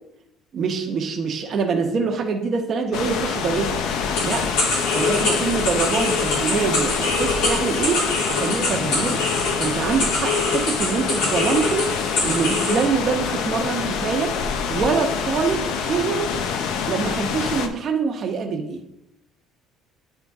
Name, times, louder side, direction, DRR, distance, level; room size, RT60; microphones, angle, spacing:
voice 1, 0.5-3.8 4.2-4.5 4.9-9.2 9.6-11.9 12.2-14.3 14.7-16.3 16.9-18.8, right 5 dB, 35° right, 3 dB, 0.9 m, -24 dB
sound 1, 2.9-17.7, left 6 dB, 65° left, 0.6 m, -26 dB
sound 2, 4.1-12.9, left 3 dB, 85° left, 2.5 m, -25 dB
9.4 x 3.7 x 3.5 m, 0.86 s
cardioid pair, 150°, 0 cm